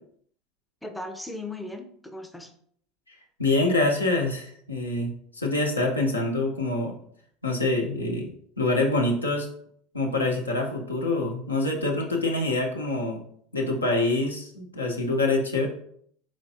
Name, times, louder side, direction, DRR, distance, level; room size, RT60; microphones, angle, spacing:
voice 1, 0.8-2.5, left 2 dB, 5° left, 4 dB, 0.5 m, -37 dB
voice 2, 3.4-7.0 7.4-8.3 8.6-9.5 9.9-13.2 13.5-15.7, left 2 dB, 85° left, 0 dB, 0.8 m, -25 dB
4.3 x 3.2 x 2.7 m, 0.63 s
figure-of-eight pair, 75°, 0 cm